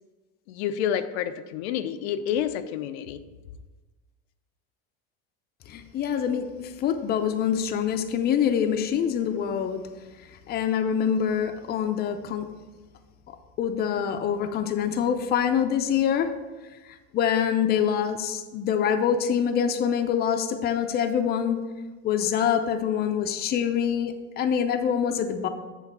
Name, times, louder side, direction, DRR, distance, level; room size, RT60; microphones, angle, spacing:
voice 1, 0.5-3.2, left 9 dB, 85° left, 10 dB, 0.6 m, -29 dB
voice 2, 5.7-9.8 10.5-12.5 13.3-16.3 17.1-21.6 22.0-25.5, left 8 dB, 30° left, 7 dB, 0.6 m, -25 dB
7.4 x 3.9 x 6.6 m, 1.2 s
supercardioid pair, 135°, 32 cm